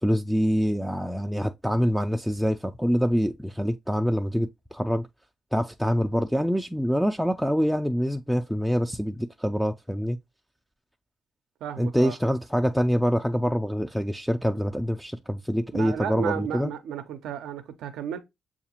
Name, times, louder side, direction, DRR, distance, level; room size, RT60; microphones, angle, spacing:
voice 1, 0.0-5.1 5.5-10.2 11.8-16.7, equal, ahead, 0.3 m, -25 dB
voice 2, 11.6-12.2 15.7-18.2, right 9 dB, 85° right, 0.4 m, -33 dB
6.4 x 2.4 x 2.8 m
cardioid pair, 70°, 0 cm